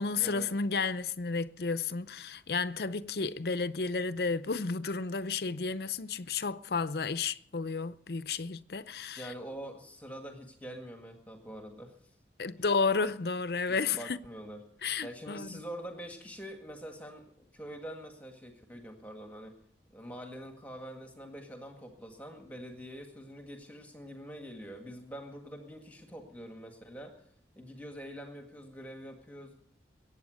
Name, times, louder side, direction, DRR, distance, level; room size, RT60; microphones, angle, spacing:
voice 1, 0.0-9.3 12.4-14.2 14.8-15.6, left 4 dB, 60° left, 0.6 m, -32 dB
voice 2, 9.2-12.0 13.7-14.6 15.0-19.5 19.9-27.1 27.6-29.5, equal, 10° left, 1.9 m, -45 dB
23.0 x 9.0 x 6.4 m
head